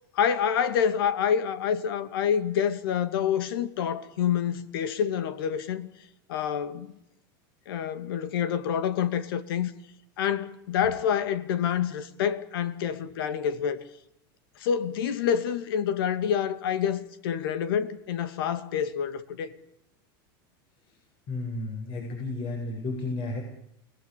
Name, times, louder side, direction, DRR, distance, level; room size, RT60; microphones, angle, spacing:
voice 1, 0.1-5.9 6.3-6.9 7.7-9.7 10.2-13.9 14.6-19.5, left 8 dB, 80° left, 2.4 m, -27 dB
voice 2, 21.3-23.4, left 2 dB, 45° left, 8.0 m, -32 dB
29.0 x 19.0 x 8.5 m
supercardioid pair, 120°, 12 cm